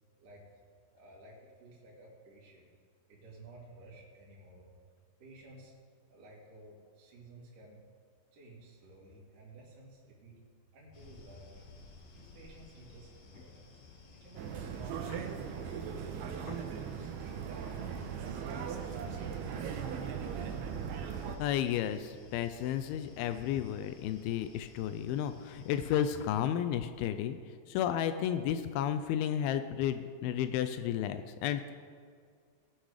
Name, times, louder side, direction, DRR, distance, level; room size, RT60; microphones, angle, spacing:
voice 1, 0.9-2.7 3.1-4.7 5.2-5.7 6.1-7.8 8.3-10.4 10.7-11.6 12.1-13.8 14.1-15.9 16.4-17.9 18.2-20.0, right 2 dB, 55° right, -6 dB, 3.1 m, -54 dB
sound 1, 10.9-26.2, left 4 dB, 65° left, 3.0 m, -56 dB
sound 2, 14.4-21.4, right 7 dB, 80° right, 2.7 m, -38 dB
voice 2, 21.4-27.4 27.7-31.7, left 10 dB, 90° left, 10 dB, 2.2 m, -32 dB
18.5 x 6.3 x 4.9 m, 2.1 s
omnidirectional pair, 4.9 m